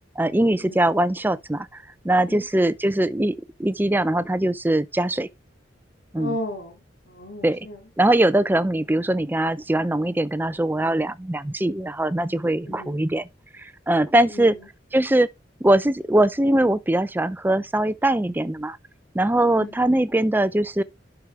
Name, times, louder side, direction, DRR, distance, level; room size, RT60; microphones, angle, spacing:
voice 1, 0.2-5.3 6.1-6.3 7.4-7.7 8.0-13.3 13.5-14.5 14.9-15.3 15.6-18.8 19.1-20.8, right 1 dB, 10° right, 0.5 m, -21 dB
voice 2, 2.1-2.5 6.1-7.8 12.7-13.0 14.2-14.7 19.4-19.7, left 1 dB, 80° left, 2.6 m, -35 dB
11.5 x 4.9 x 3.2 m
head